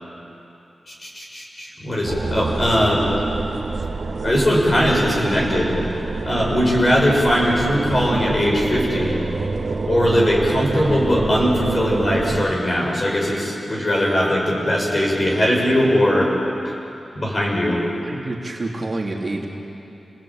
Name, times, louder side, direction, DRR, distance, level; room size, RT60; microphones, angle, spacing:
voice 1, 0.9-3.0 4.2-5.8 6.2-9.2 9.8-16.3 16.6-16.7 17.1-17.8, equal, 30° left, -2 dB, 6.8 m, -20 dB
sound 1, 2.0-12.5, right 3 dB, 50° right, 1.3 m, -26 dB
voice 2, 18.0-19.5, right 2 dB, 35° right, -2 dB, 3.0 m, -28 dB
30.0 x 19.5 x 8.9 m, 2.8 s
wide cardioid pair, 125°, 0 cm